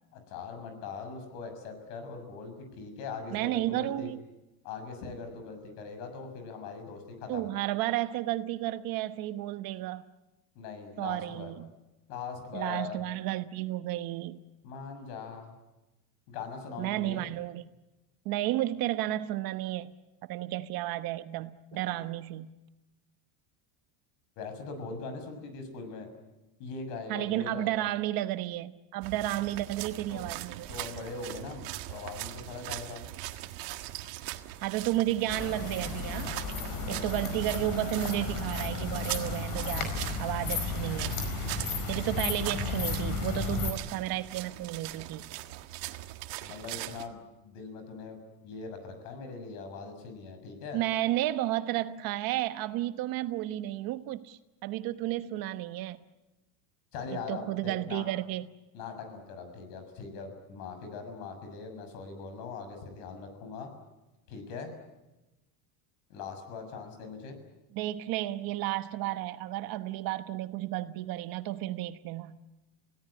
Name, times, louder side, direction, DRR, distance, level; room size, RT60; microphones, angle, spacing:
voice 1, 0.1-4.1 4.6-7.5 10.6-11.5 12.1-13.0 14.6-15.5 16.3-17.3 21.8-22.0 24.4-26.1 26.6-27.8 30.1-30.2 30.7-33.0 46.4-50.8 56.9-58.1 58.7-63.7 64.3-64.7 66.1-67.4, left 5 dB, 70° left, 7 dB, 6.8 m, -41 dB
voice 2, 3.3-4.2 7.3-10.0 11.0-11.7 12.5-14.4 16.8-17.7 18.2-19.9 20.2-22.5 27.1-30.7 34.6-36.3 36.9-39.9 40.2-41.2 41.9-45.2 50.7-56.0 57.3-58.5 67.7-72.4, right 15 dB, 45° right, 11 dB, 1.1 m, -32 dB
sound 1, 29.0-47.1, right 16 dB, 65° right, 1.8 m, -41 dB
sound 2, 35.3-43.7, left 4 dB, 40° left, 4.8 m, -33 dB
28.0 x 17.5 x 9.7 m, 1.0 s
cardioid pair, 155°, 48 cm